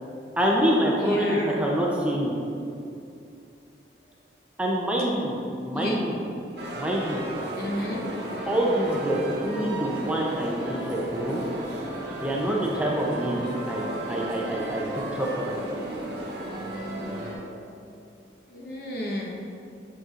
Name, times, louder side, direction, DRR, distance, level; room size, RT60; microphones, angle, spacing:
voice 1, 0.4-2.3 4.6-5.3 5.6-6.2 6.7-7.2 8.5-11.4 12.1-15.8, right 1 dB, 5° right, -3 dB, 0.6 m, -26 dB
voice 2, 1.0-1.6 5.7-6.0 6.5-6.6 7.5-8.0 18.5-19.3, left 1 dB, 55° left, -2 dB, 1.0 m, -32 dB
sound 1, 6.6-17.3, right 1 dB, 70° right, 1.4 m, -34 dB
8.0 x 6.0 x 2.5 m, 2.6 s
head